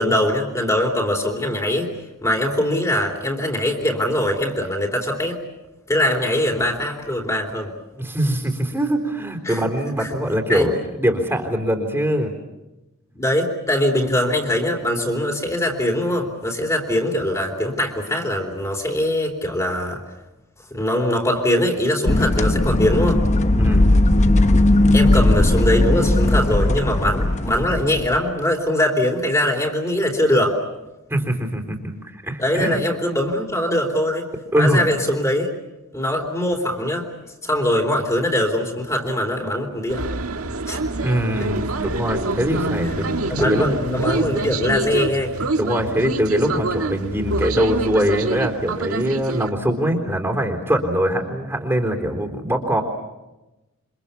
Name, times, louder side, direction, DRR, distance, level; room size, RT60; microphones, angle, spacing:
voice 1, 0.0-1.9 2.2-5.4 5.9-7.7 9.5-9.6 10.0-10.1 10.5-10.7 13.2-20.0 20.7-23.2 24.9-30.6 32.4-34.3 34.6-35.5 35.9-37.1 37.4-40.0 40.7-40.8 43.2-45.5, left 1 dB, 15° left, 1 dB, 3.7 m, -22 dB
voice 2, 8.0-12.3 23.5-23.9 31.1-32.8 34.5-34.8 41.0-43.6 45.6-52.8, equal, 10° right, 2 dB, 3.7 m, -22 dB
sound 1, 22.0-28.2, left 1 dB, 35° left, 1.0 m, -17 dB
sound 2, 39.9-49.5, right 2 dB, 85° right, 1.7 m, -26 dB
28.5 x 25.5 x 7.1 m, 1.0 s
head